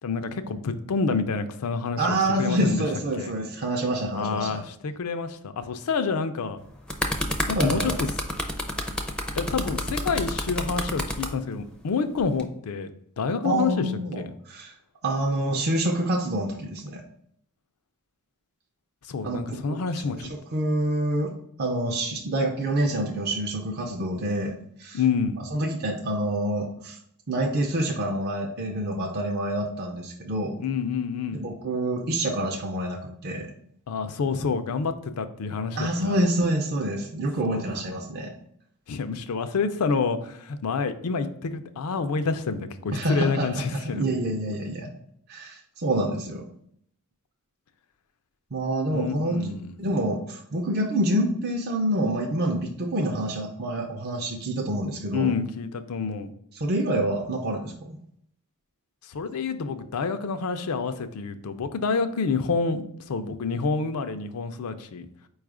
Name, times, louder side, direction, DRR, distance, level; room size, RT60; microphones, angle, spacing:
voice 1, 0.0-2.8 3.2-3.3 4.1-6.6 7.5-7.9 9.4-12.9 13.2-13.8 14.2-14.3 19.1-20.3 24.9-25.4 30.6-31.4 33.9-36.1 37.4-37.8 38.9-44.1 48.9-49.7 55.1-56.3 59.1-65.1, left 5 dB, 75° left, 9 dB, 0.4 m, -28 dB
voice 2, 2.0-4.6 7.6-8.0 13.4-14.7 15.0-17.0 19.2-19.8 20.1-25.0 25.4-27.0 27.3-30.6 31.3-33.5 35.7-38.3 42.9-44.9 45.3-46.5 48.5-55.3 56.5-58.0, right 1 dB, 45° right, 1 dB, 0.5 m, -27 dB
sound 1, 6.6-11.3 12.2-12.4, left 1 dB, 5° left, 0.4 m, -29 dB
4.7 x 2.4 x 4.8 m, 0.69 s
head